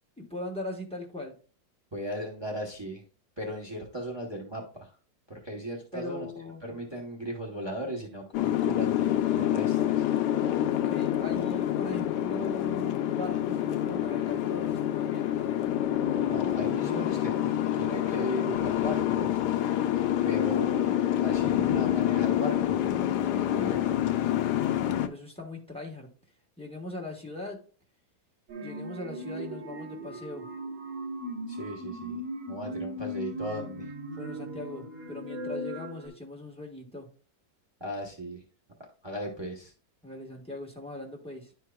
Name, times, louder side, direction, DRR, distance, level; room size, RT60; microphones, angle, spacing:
voice 1, 0.2-1.3 5.9-6.6 10.3-15.5 24.2-26.1 26.6-27.6 28.6-30.5 34.1-37.1 40.0-41.5, left 2 dB, 5° left, 0 dB, 0.8 m, -40 dB
voice 2, 1.9-3.0 3.4-4.9 5.3-6.3 6.6-10.0 16.1-19.4 20.3-23.8 31.5-32.2 32.5-33.9 37.8-38.4 39.0-39.7, equal, 45° right, -2 dB, 0.3 m, -37 dB
Boat Water vehicle, 8.3-25.1, left 12 dB, 70° left, 1.1 m, -27 dB
sound 1, 28.5-36.1, equal, 80° right, 2.6 m, -38 dB
10.5 x 4.6 x 2.2 m, 0.39 s
omnidirectional pair, 2.1 m